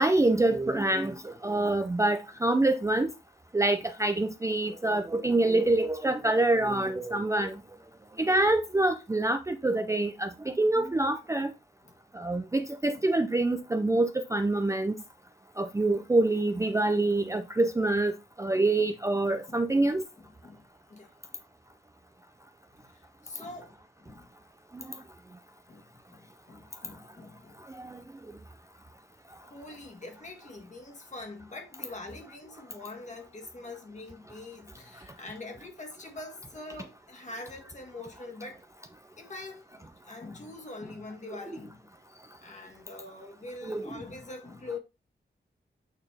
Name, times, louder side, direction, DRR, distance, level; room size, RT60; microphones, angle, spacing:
voice 1, 0.0-3.1 3.5-7.6 8.2-11.5 12.1-14.9 15.6-18.1 18.4-20.0 24.7-25.0 27.7-28.0 43.6-43.9, right 2 dB, 15° right, 0.4 m, -26 dB
voice 2, 11.8-12.3 12.9-13.0 18.4-18.9 19.5-19.9 20.2-20.6 20.9-21.1 22.8-24.3 25.7-27.6 29.4-38.6 39.2-41.9 42.4-44.8, left 2 dB, 40° left, 1.6 m, -44 dB
8.7 x 4.1 x 3.3 m
wide cardioid pair, 145°, 19 cm